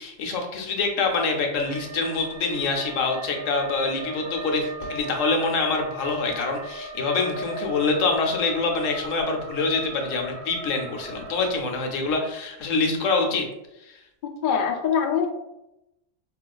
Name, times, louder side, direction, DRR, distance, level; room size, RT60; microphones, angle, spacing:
voice 1, 0.0-13.5 13.9-14.0, left 3 dB, 80° left, 2 dB, 1.0 m, -25 dB
sound 1, 1.6-11.5, right 2 dB, 50° right, 0.8 m, -37 dB
voice 2, 14.4-15.3, left 7 dB, 65° left, 2 dB, 0.5 m, -23 dB
4.3 x 2.3 x 2.3 m, 0.90 s
omnidirectional pair, 1.3 m